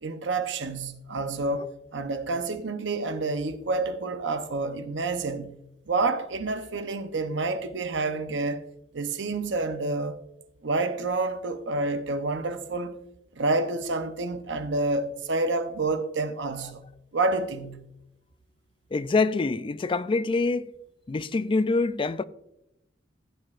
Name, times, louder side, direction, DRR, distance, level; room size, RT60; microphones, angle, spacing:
voice 1, 0.0-5.5 5.9-8.6 8.9-10.2 10.6-13.0 13.4-16.8 17.1-17.9, right 3 dB, 70° right, 0.8 m, -28 dB
voice 2, 18.9-20.7 21.1-22.2, left 3 dB, 25° left, 0.3 m, -25 dB
16.0 x 7.7 x 2.5 m
head